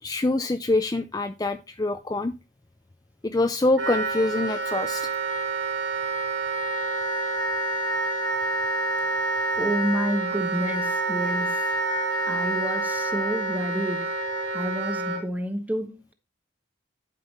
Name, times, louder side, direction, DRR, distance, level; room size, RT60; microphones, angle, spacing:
voice 1, 0.0-2.3 3.2-5.1, left 2 dB, 20° left, 0.5 m, -25 dB
Wind instrument woodwind instrument, 3.8-15.2, right 2 dB, 70° right, 3.5 m, -27 dB
voice 2, 9.6-11.6 12.3-14.1 14.5-16.1, equal, 10° right, 1.1 m, -29 dB
11.0 x 5.5 x 4.2 m
head